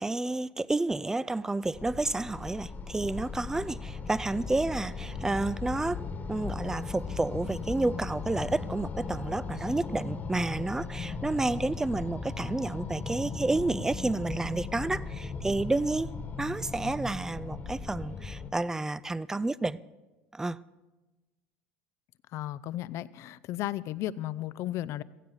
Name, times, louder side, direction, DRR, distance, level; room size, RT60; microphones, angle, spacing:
voice 1, 0.0-6.0 6.3-16.1 16.4-19.8 20.3-20.6, right 2 dB, 10° right, 0.4 m, -30 dB
sound 1, 1.7-18.5, left 4 dB, 30° left, 1.4 m, -37 dB
voice 2, 22.3-25.0, left 14 dB, 60° left, 0.5 m, -34 dB
16.5 x 15.5 x 4.1 m
supercardioid pair, 90°, 6 cm